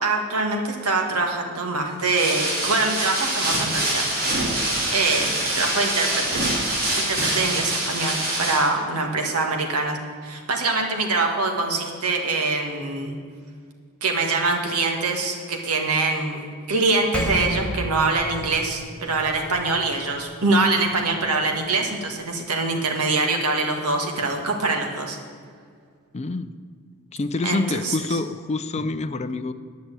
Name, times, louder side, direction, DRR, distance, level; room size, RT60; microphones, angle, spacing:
voice 1, 0.0-4.1 4.9-6.5 6.9-10.0 10.2-13.2 14.0-25.2 27.4-28.2, right 3 dB, 90° right, 2 dB, 1.7 m, -24 dB
sound 1, 2.0-8.7, right 1 dB, 45° right, 3.1 m, -25 dB
Percussion, 17.1-21.9, equal, 5° left, 1.1 m, -33 dB
voice 2, 26.1-26.5 27.1-29.5, left 3 dB, 30° left, 12 dB, 0.4 m, -27 dB
10.5 x 6.2 x 8.6 m, 2.1 s
head